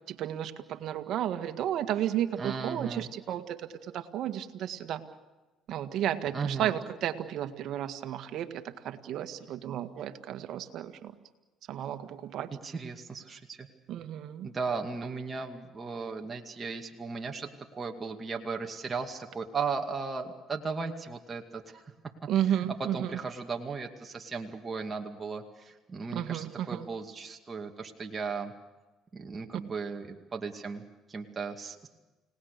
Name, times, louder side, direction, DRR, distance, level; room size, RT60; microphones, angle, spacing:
voice 1, 0.1-5.0 5.7-11.1 11.7-12.5 13.9-14.5 22.3-23.2 26.1-26.9, right 11 dB, 65° right, 8 dB, 1.8 m, -33 dB
voice 2, 2.4-3.1 6.3-6.7 12.5-13.7 14.4-21.8 22.5-28.5 29.1-31.9, right 4 dB, 30° right, 3 dB, 2.3 m, -36 dB
30.0 x 18.5 x 6.8 m, 1.2 s
supercardioid pair, 80°, 0 cm